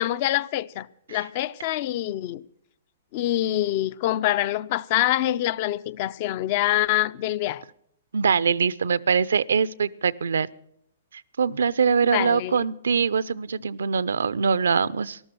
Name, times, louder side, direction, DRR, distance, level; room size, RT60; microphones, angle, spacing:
voice 1, 0.0-2.4 3.1-7.6 12.1-12.6, left 14 dB, 50° left, 0.5 m, -25 dB
voice 2, 8.1-10.5 11.1-15.2, right 6 dB, 80° right, 0.5 m, -23 dB
13.5 x 12.5 x 6.1 m
hypercardioid pair, 125°, 0 cm